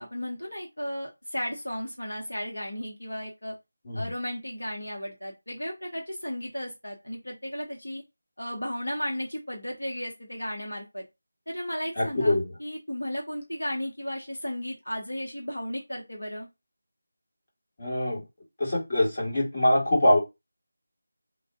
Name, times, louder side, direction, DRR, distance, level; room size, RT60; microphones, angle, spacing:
voice 1, 0.0-3.6 3.9-8.0 8.4-11.0 11.5-16.5, equal, 70° left, -1 dB, 0.8 m, -34 dB
voice 2, 12.0-12.5 17.8-18.2 18.6-20.2, left 1 dB, 30° left, -5 dB, 1.4 m, -23 dB
2.5 x 2.1 x 3.4 m, 0.23 s
figure-of-eight pair, 165°, 0 cm